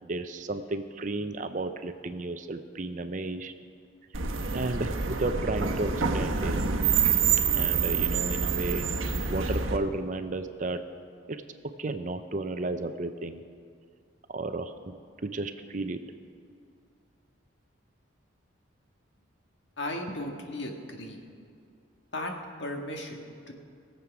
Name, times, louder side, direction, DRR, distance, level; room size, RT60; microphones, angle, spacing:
voice 1, 0.1-3.5 4.5-6.6 7.5-8.8 9.3-10.8 11.3-11.4 11.8-13.4 14.3-14.9 15.2-16.0, right 2 dB, 40° right, 9 dB, 0.5 m, -33 dB
sound 1, 4.1-9.8, right 6 dB, 85° right, 1.0 m, -27 dB
voice 2, 19.8-21.2 22.1-22.3 22.6-23.5, left 1 dB, 60° left, 2 dB, 1.6 m, -36 dB
20.0 x 7.6 x 6.0 m, 2.3 s
head